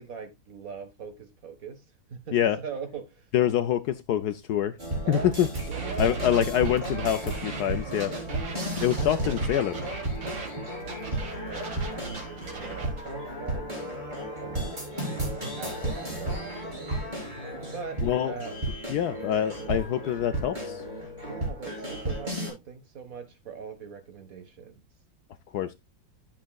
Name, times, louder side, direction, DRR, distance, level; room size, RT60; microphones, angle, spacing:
voice 1, 0.0-3.3 5.0-5.4 5.6-6.2 8.0-8.6 11.1-14.1 14.4-17.3 17.7-18.5 19.6-19.7 21.2-24.7, right 6 dB, 50° right, 1.7 m, -41 dB
voice 2, 3.3-4.7 5.1-5.5 6.0-8.1 8.8-9.8 18.0-18.3 18.9-20.8 25.5-25.7, left 10 dB, 70° left, 1.0 m, -25 dB
sound 1, 4.8-22.5, right 1 dB, 25° right, 4.2 m, -34 dB
sound 2, 5.2-10.5 10.8-13.0, right 6 dB, 85° right, 2.7 m, -39 dB
sound 3, 8.9-22.2, left 3 dB, 5° left, 6.6 m, -46 dB
11.5 x 7.4 x 2.3 m
omnidirectional pair, 2.0 m